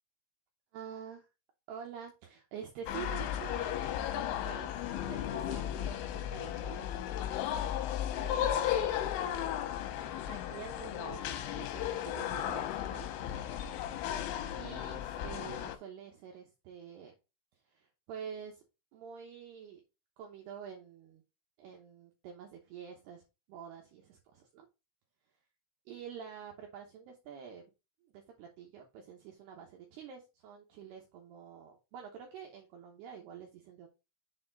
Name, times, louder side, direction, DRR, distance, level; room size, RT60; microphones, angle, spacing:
voice 1, 0.7-1.3 1.7-4.1 4.4-6.9 8.2-9.6 10.0-13.1 14.6-17.1 17.6-18.6 18.9-19.8 20.2-21.2 21.6-23.2 23.5-24.7 25.9-27.6 28.0-33.9, right 7 dB, 80° right, 1 dB, 2.4 m, -48 dB
sound 1, 2.9-15.8, left 10 dB, 80° left, 3.3 m, -35 dB
7.0 x 4.2 x 3.8 m, 0.27 s
omnidirectional pair, 6.0 m